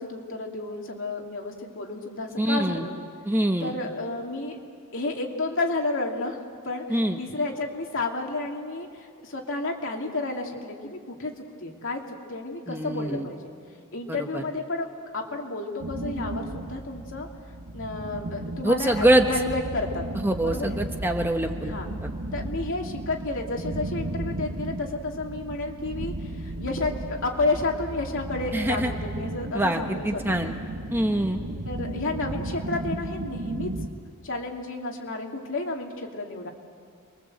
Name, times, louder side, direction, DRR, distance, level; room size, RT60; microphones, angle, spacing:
voice 1, 0.0-3.0 3.6-4.6 4.9-6.4 6.6-11.3 11.6-13.5 13.9-14.9 15.1-17.3 17.7-20.0 20.4-20.8 21.6-22.0 22.3-30.5 31.7-33.7 34.2-36.5, left 2 dB, 60° left, 1 dB, 3.0 m, -31 dB
voice 2, 2.4-2.8 3.3-3.7 6.9-7.2 12.7-13.3 14.3-14.4 18.6-19.3 20.2-21.7 28.5-28.9 29.5-29.8 30.0-30.5 30.9-31.4, right 1 dB, 10° right, 4 dB, 1.2 m, -24 dB
sound 1, 15.8-33.9, right 1 dB, 75° right, 1.4 m, -35 dB
29.0 x 22.5 x 7.9 m, 2.2 s
head